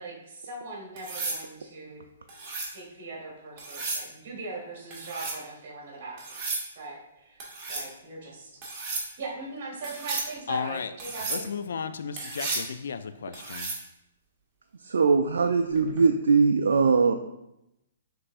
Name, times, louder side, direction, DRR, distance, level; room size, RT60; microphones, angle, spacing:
voice 1, 0.0-2.0 2.6-6.4 6.7-7.4 7.7-8.5 9.2-11.5, right 3 dB, 50° right, -2 dB, 1.4 m, -40 dB
sound 1, 1.0-1.4 2.3-2.7 3.6-4.1 4.9-5.4 6.2-6.7 7.4-7.9 8.6-9.1 9.8-10.3 11.0-11.4 12.2-12.7 13.3-13.8 15.8-16.0, right 3 dB, 30° right, 1.3 m, -33 dB
voice 2, 10.5-10.9 11.3-13.7, left 6 dB, 70° left, 10 dB, 0.3 m, -34 dB
voice 3, 14.8-17.1, right 5 dB, 80° right, 6 dB, 0.3 m, -21 dB
5.9 x 3.2 x 2.5 m, 0.87 s
hypercardioid pair, 135°, 0 cm